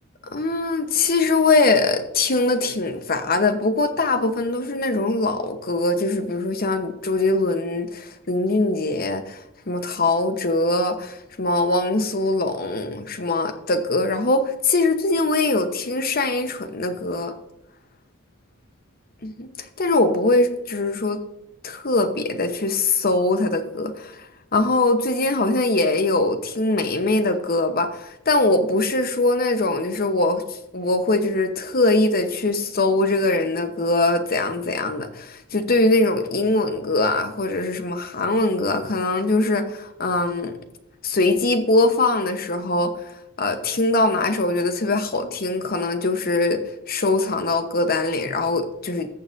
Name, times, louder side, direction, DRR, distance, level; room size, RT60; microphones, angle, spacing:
voice 1, 0.3-17.3 19.2-19.5 19.8-21.2 21.6-24.3 24.5-30.4 30.7-40.5 41.0-42.9 43.4-49.1, left 2 dB, 45° left, 8 dB, 1.0 m, -22 dB
14.5 x 6.9 x 2.6 m, 0.90 s
head